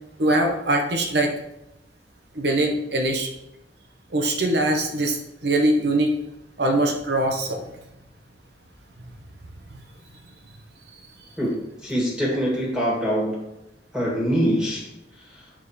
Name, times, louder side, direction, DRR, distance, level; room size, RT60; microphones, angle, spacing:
voice 1, 0.2-1.3 2.3-3.3 4.1-6.1 6.6-7.6, right 1 dB, 65° right, 3 dB, 1.2 m, -22 dB
voice 2, 11.4-13.4 13.9-14.9, equal, 5° right, -4 dB, 1.9 m, -24 dB
7.5 x 5.8 x 4.3 m, 0.87 s
head